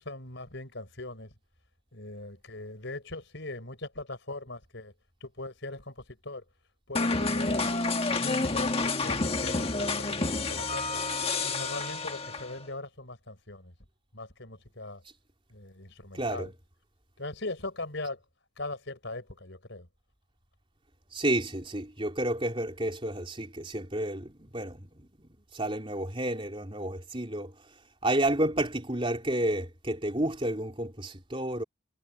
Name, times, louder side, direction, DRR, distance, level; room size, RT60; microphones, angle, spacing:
voice 1, 0.0-1.3 1.9-4.9 5.2-6.4 6.9-7.7 8.1-11.0 11.4-13.7 14.1-15.0 15.5-16.5 17.2-18.2 18.6-19.9, left 2 dB, 60° left, 5.4 m, -40 dB
sound 1, 6.9-12.6, left 3 dB, 30° left, 1.7 m, -29 dB
voice 2, 16.1-16.5 21.1-27.5 28.0-31.6, right 1 dB, 25° right, 3.8 m, -31 dB
head